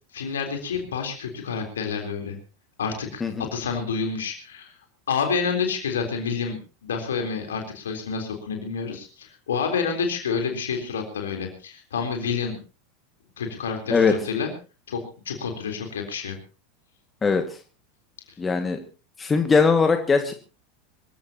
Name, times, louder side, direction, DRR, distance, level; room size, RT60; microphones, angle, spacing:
voice 1, 0.1-2.4 2.8-4.7 5.1-12.6 13.4-14.5 14.9-16.4, left 5 dB, 70° left, 4 dB, 3.7 m, -29 dB
voice 2, 18.4-18.8 19.2-20.3, left 5 dB, 20° left, 6 dB, 1.9 m, -20 dB
25.5 x 15.5 x 2.9 m, 0.34 s
figure-of-eight pair, 85°, 0 cm